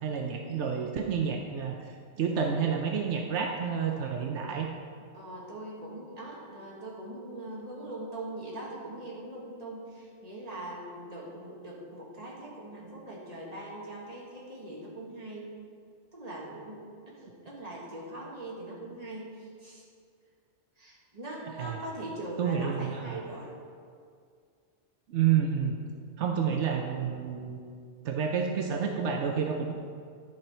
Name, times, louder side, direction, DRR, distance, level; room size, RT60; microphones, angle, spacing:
voice 1, 0.0-4.7 21.6-21.8 22.4-23.2 25.1-25.8 26.2-27.6 28.0-29.7, right 7 dB, 80° right, 3 dB, 1.0 m, -29 dB
voice 2, 5.1-15.5 16.1-19.8 20.8-23.6, right 1 dB, 35° right, -4 dB, 1.8 m, -41 dB
10.5 x 6.1 x 4.3 m, 2.2 s
omnidirectional pair, 1.2 m